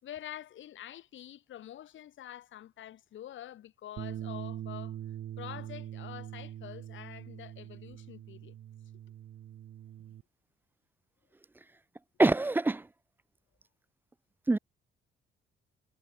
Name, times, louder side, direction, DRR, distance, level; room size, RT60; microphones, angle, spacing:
voice 1, 0.0-5.0 5.4-8.6, left 12 dB, 75° left, 6.1 m, -46 dB
Bass guitar, 4.0-10.2, right 11 dB, 70° right, 2.8 m, -43 dB
voice 2, 12.2-12.8 14.5-14.6, right 2 dB, 10° right, 0.4 m, -24 dB
cardioid pair, 90°, 20 cm